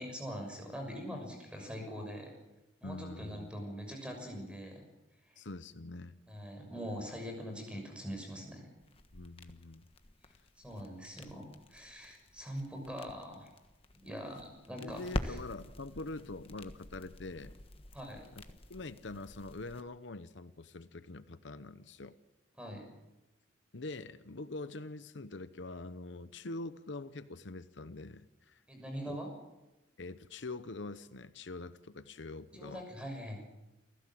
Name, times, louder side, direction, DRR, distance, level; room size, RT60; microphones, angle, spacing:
voice 1, 0.0-2.3 2.8-4.9 5.3-5.4 6.3-8.7 10.6-13.5 13.9-15.4 17.9-18.3 22.6-22.9 28.7-29.3 32.5-33.4, equal, 5° right, 3 dB, 6.5 m, -43 dB
voice 2, 2.8-3.5 5.4-6.2 9.1-9.8 14.7-17.5 18.7-22.2 23.7-28.6 29.1-29.2 30.0-32.8, left 2 dB, 70° left, 13 dB, 0.9 m, -44 dB
sound 1, 8.8-19.8, left 1 dB, 30° left, 1.4 m, -46 dB
29.0 x 16.0 x 7.7 m, 0.97 s
head